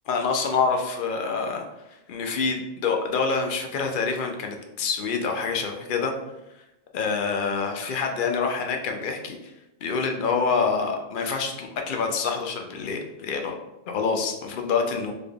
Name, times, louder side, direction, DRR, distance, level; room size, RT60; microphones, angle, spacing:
voice 1, 0.1-6.1 6.9-9.4 9.8-13.5 13.9-15.1, left 5 dB, 60° left, 2 dB, 0.7 m, -26 dB
4.1 x 3.3 x 2.2 m, 0.95 s
omnidirectional pair, 1.1 m